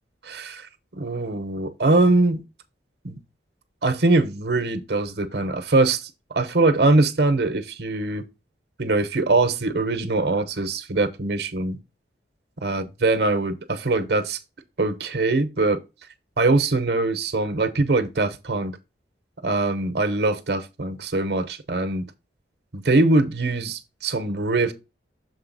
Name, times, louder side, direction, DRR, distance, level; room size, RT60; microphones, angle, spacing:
voice 1, 0.2-2.4 3.0-3.2 3.8-8.2 8.8-11.8 12.6-14.4 14.8-15.8 16.4-18.8 19.4-22.1 22.7-24.7, right 2 dB, 65° right, 0.9 m, -22 dB
6.8 x 4.1 x 4.0 m
head